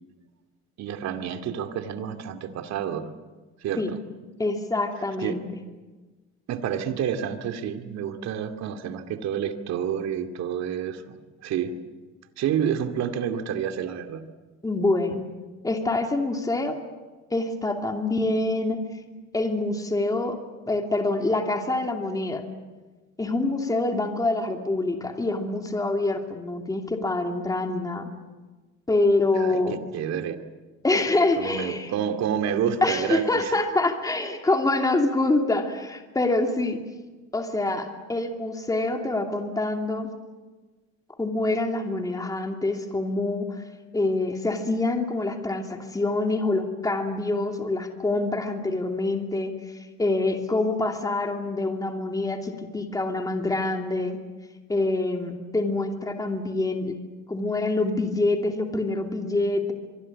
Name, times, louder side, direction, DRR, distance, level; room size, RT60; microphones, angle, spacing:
voice 1, 0.8-3.1 3.6-3.8 5.2-5.3 6.5-11.7 12.4-14.2 29.3-30.4 31.4-33.5, right 8 dB, 60° right, 7 dB, 2.5 m, -29 dB
voice 2, 4.4-5.4 14.6-15.2 15.6-16.8 17.3-18.8 19.3-20.4 20.7-22.4 23.2-28.1 28.9-29.8 30.8-31.9 32.8-36.8 37.3-40.1 41.2-43.6 43.9-49.5 50.0-54.2 54.7-57.0 57.3-59.7, left 2 dB, 10° left, 4 dB, 2.8 m, -25 dB
24.5 x 23.5 x 8.6 m, 1.3 s
cardioid pair, 125°, 30 cm